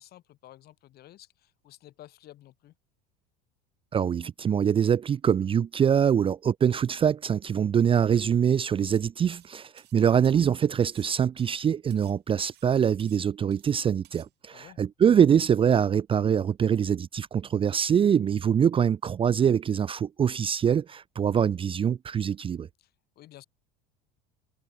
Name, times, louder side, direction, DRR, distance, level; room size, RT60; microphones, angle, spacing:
voice 1, 0.0-2.7 14.5-14.8 22.8-23.4, left 14 dB, 50° left, 3.7 m, -52 dB
voice 2, 3.9-22.7, right 8 dB, 25° right, 0.6 m, -24 dB
sound 1, 8.8-9.1 9.3-10.5 10.8-12.2 12.4-12.7 13.0-13.7 14.0-14.3, right 16 dB, 55° right, 6.3 m, -57 dB
supercardioid pair, 100°, 20 cm